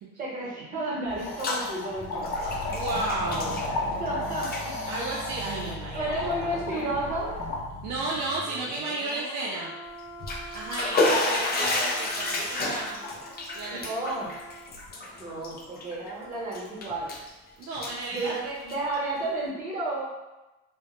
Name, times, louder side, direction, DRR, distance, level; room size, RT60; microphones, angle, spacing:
voice 1, 0.2-2.3 4.0-4.7 5.7-7.3 13.7-14.3 15.2-17.1 18.1-20.0, right 2 dB, 25° right, -4 dB, 0.9 m, -32 dB
sound 1, 1.1-7.6, left 2 dB, 80° left, 0.6 m, -34 dB
Bathtub (filling or washing), 1.1-1.7 2.0-4.1 4.3-4.6 5.4-5.5 6.2-6.3 6.7-6.8 10.0-16.1 16.5-17.3 17.6-18.9, left 2 dB, 30° left, 0.4 m, -30 dB
sound 2, 1.8-16.8 17.1-17.2, equal, 60° left, 0.9 m, -43 dB
voice 2, 2.7-3.7 4.9-6.6 7.8-9.8 10.5-13.1 13.5-13.9 17.6-18.3, right 2 dB, 60° right, -4 dB, 0.5 m, -33 dB
2.0 x 2.0 x 2.9 m, 1.1 s
cardioid pair, 110°, 32 cm